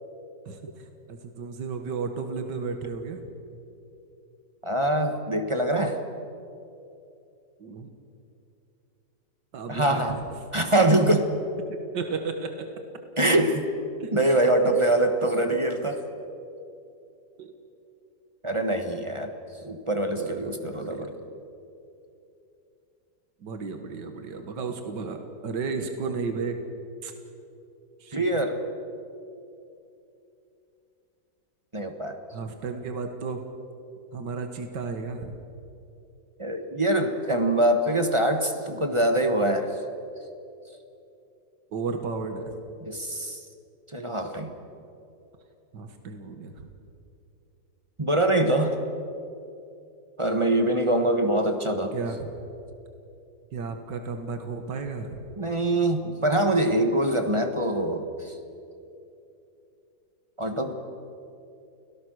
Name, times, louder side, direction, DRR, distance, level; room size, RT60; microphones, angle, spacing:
voice 1, 1.1-3.2 7.6-7.9 9.5-10.2 11.9-12.7 14.0-14.1 17.4-17.5 20.2-21.3 23.4-26.6 27.0-27.1 28.0-28.2 32.3-33.5 34.1-35.4 41.7-42.5 45.7-46.7 51.9-52.3 53.5-55.2, right 4 dB, 80° right, 6 dB, 2.1 m, -33 dB
voice 2, 4.6-6.0 9.7-10.2 10.5-11.3 13.2-13.6 14.1-16.0 18.4-19.3 19.6-21.1 28.1-28.6 31.7-32.2 36.4-39.8 42.8-43.4 43.9-44.5 48.0-48.8 50.2-51.9 55.4-58.3 60.4-60.7, right 1 dB, 20° right, 6 dB, 1.3 m, -24 dB
29.5 x 18.5 x 6.4 m, 2.7 s
omnidirectional pair, 1.9 m